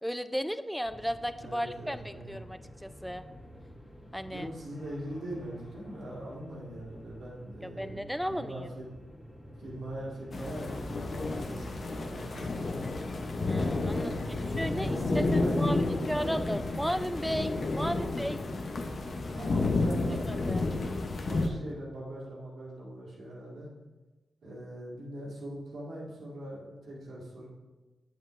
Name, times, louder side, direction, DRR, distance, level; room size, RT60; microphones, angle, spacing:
voice 1, 0.0-3.2 4.1-4.5 7.6-8.7 13.5-14.3 14.6-15.8 16.1-18.4 20.1-20.6, equal, ahead, 11 dB, 0.4 m, -34 dB
sound 1, 0.8-20.3, equal, 25° left, 1.8 m, -47 dB
voice 2, 1.3-2.4 4.2-8.9 9.6-13.1 14.0-16.3 17.8-18.1 19.3-23.7 24.4-27.5, right 1 dB, 85° right, -5 dB, 2.0 m, -41 dB
sound 2, 10.3-21.5, left 3 dB, 65° left, 0.7 m, -31 dB
8.0 x 7.3 x 2.5 m, 1.2 s
cardioid pair, 55°, 0 cm